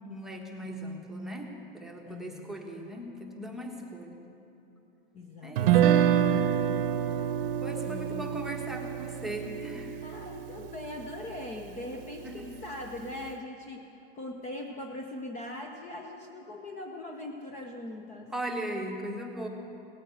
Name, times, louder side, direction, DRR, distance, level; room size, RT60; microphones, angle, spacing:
voice 1, 0.0-4.2 5.4-6.5 7.6-10.0 12.2-12.5 18.3-19.5, right 1 dB, ahead, -1 dB, 1.3 m, -38 dB
voice 2, 2.1-2.6 5.1-6.1 7.8-8.4 10.0-13.9 14.1-18.3, left 2 dB, 25° left, 3 dB, 0.9 m, -41 dB
Guitar, 5.6-11.7, right 10 dB, 65° right, 0.8 m, -27 dB
17.5 x 8.8 x 7.9 m, 2.9 s
supercardioid pair, 150°, 29 cm